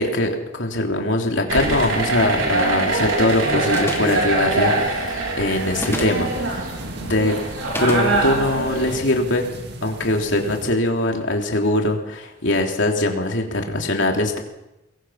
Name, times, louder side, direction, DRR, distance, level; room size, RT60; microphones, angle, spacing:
voice 1, 0.0-6.7 7.0-7.3 7.8-9.5 9.8-14.4, left 1 dB, 65° left, 2 dB, 3.3 m, -22 dB
sound 1, 1.5-9.0, right 2 dB, 75° right, 4.6 m, -23 dB
sound 2, 3.7-4.2 5.7-6.2 7.7-8.1, left 1 dB, 10° left, 2.1 m, -28 dB
sound 3, 5.5-10.7, right 1 dB, 55° right, 2.3 m, -38 dB
24.0 x 21.5 x 5.8 m, 0.94 s
head